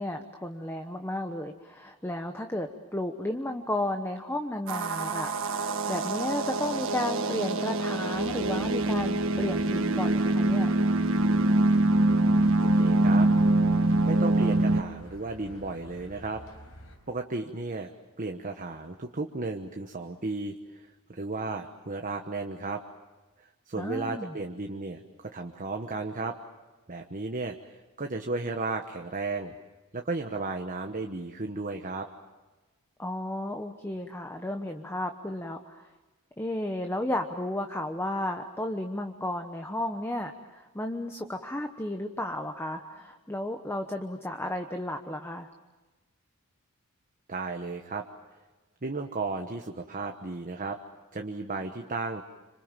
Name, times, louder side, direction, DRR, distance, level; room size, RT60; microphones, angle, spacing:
voice 1, 0.0-10.7 23.8-24.3 33.0-35.9 36.4-45.5, left 1 dB, 10° left, 5 dB, 1.1 m, -33 dB
sound 1, 4.7-14.8, right 2 dB, 65° right, 1.4 m, -24 dB
sound 2, 8.1-17.0, equal, 85° left, 5.2 m, -48 dB
voice 2, 12.6-13.3 14.0-16.4 17.1-17.9 18.2-22.8 23.4-26.3 26.9-29.5 29.9-32.1 47.3-48.0 48.8-50.8 51.1-52.2, right 3 dB, 40° right, 4 dB, 1.2 m, -34 dB
27.0 x 26.0 x 7.5 m, 1.2 s
head